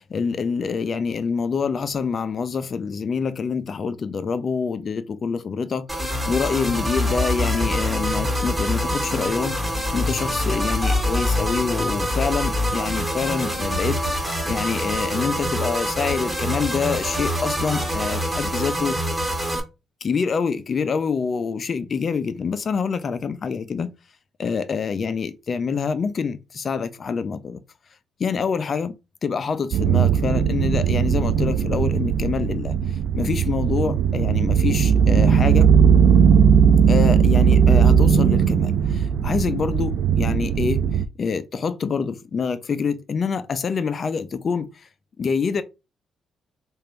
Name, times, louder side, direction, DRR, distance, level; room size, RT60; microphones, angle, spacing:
voice 1, 0.0-19.1 20.0-23.9 24.4-27.6 28.2-28.9 29.2-35.7 36.9-44.9 45.2-45.6, left 5 dB, 45° left, 0.5 m, -26 dB
sound 1, 5.9-19.6, equal, 5° right, 1.8 m, -25 dB
sound 2, 29.7-41.1, right 7 dB, 70° right, 0.4 m, -18 dB
3.2 x 2.5 x 4.4 m
cardioid pair, 90°, 0 cm